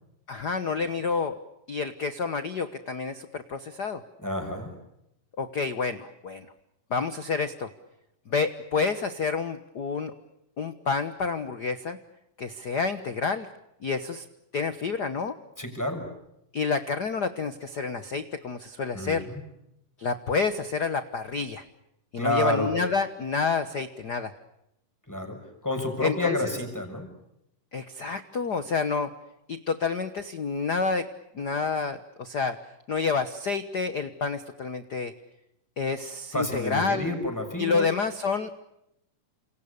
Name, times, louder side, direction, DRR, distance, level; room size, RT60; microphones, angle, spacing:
voice 1, 0.3-1.4 1.7-4.0 5.4-6.5 6.9-7.7 8.3-10.1 10.6-12.0 12.4-13.5 13.8-14.3 14.5-15.4 16.5-19.3 20.0-21.6 22.1-24.3 26.0-26.4 27.7-29.1 29.5-31.1 31.3-32.6 32.9-35.1 35.8-37.1 37.6-38.5, left 4 dB, 75° left, 10 dB, 0.9 m, -29 dB
voice 2, 4.2-4.7 15.6-16.0 18.9-19.4 22.2-22.7 25.1-25.4 25.6-27.1 36.3-37.9, left 1 dB, 5° left, 5 dB, 6.2 m, -29 dB
30.0 x 27.5 x 6.7 m, 0.83 s
omnidirectional pair, 3.8 m